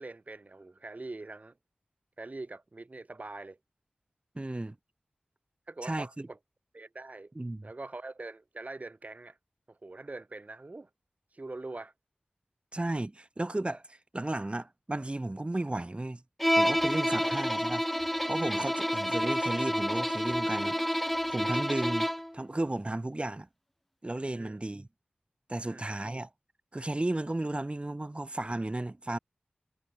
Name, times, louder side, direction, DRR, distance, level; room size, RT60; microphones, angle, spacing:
voice 1, 0.0-1.5 2.2-3.6 5.7-6.4 6.7-7.3 7.6-9.4 9.7-10.9 11.3-11.9 17.1-17.4 18.6-18.7 20.3-20.7 24.4-24.6 25.6-25.9, right 2 dB, 50° right, 2.3 m, -43 dB
voice 2, 4.3-4.8 5.8-6.3 7.4-7.7 12.7-16.2 16.5-17.8 18.3-21.0 21.3-23.5 24.0-24.9 25.5-26.3 26.7-29.2, right 2 dB, 35° right, 8.0 m, -34 dB
Bowed string instrument, 16.4-22.3, equal, 5° left, 0.7 m, -29 dB
cardioid pair, 45°, 3 cm